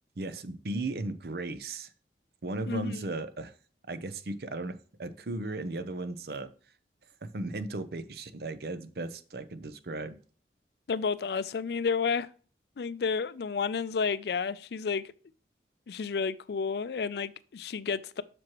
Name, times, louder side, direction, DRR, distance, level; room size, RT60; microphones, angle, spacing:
voice 1, 0.2-1.9 2.4-3.5 3.9-6.5 7.2-10.2, right 2 dB, 60° right, 0.6 m, -36 dB
voice 2, 2.7-3.0 10.9-12.3 12.8-15.0 15.9-18.2, left 5 dB, 65° left, 0.4 m, -31 dB
7.6 x 6.1 x 3.0 m
head